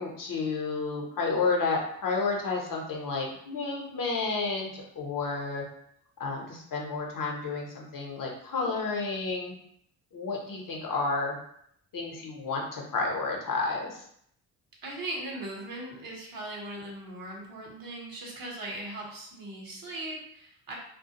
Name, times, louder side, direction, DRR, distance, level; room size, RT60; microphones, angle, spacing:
voice 1, 0.0-5.6 6.2-9.5 10.1-11.4 11.9-14.0, left 4 dB, 45° left, -1 dB, 0.8 m, -31 dB
voice 2, 14.8-20.8, right 1 dB, 50° right, -1 dB, 1.0 m, -39 dB
2.3 x 2.1 x 2.8 m, 0.69 s
hypercardioid pair, 40°, 46 cm